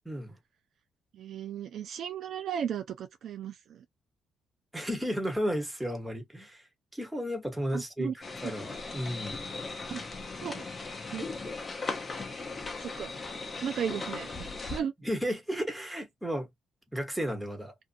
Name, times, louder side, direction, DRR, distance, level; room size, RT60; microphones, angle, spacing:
voice 1, 0.0-0.4 4.7-6.6 6.9-8.1 8.4-9.4 15.0-16.5 16.9-17.8, equal, 5° right, 1.2 m, -33 dB
voice 2, 1.1-3.8 7.7-8.1 9.9-10.0 10.4-10.7 11.1-11.2 12.8-13.1 13.6-14.9, right 8 dB, 70° right, 0.5 m, -35 dB
sound 1, 8.2-14.8, left 3 dB, 30° left, 0.8 m, -38 dB
2.6 x 2.4 x 2.6 m
cardioid pair, 90°, 0 cm